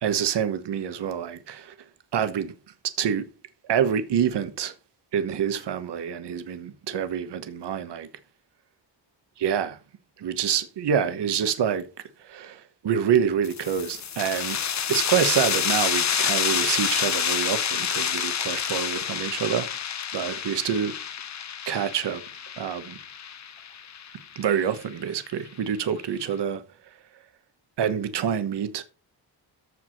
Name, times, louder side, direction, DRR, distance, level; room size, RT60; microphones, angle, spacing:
voice 1, 0.0-1.7 2.1-2.5 3.0-3.3 3.7-4.7 5.1-8.1 9.4-9.8 10.2-11.8 12.2-14.6 14.9-19.7 20.1-21.0 21.7-22.2 22.6-23.0 24.4-26.6 27.8-28.8, right 8 dB, 65° right, 1.2 m, -26 dB
sound 1, 13.4-24.8, left 8 dB, 40° left, 0.8 m, -28 dB
14.0 x 4.8 x 5.8 m
wide cardioid pair, 170°, 43 cm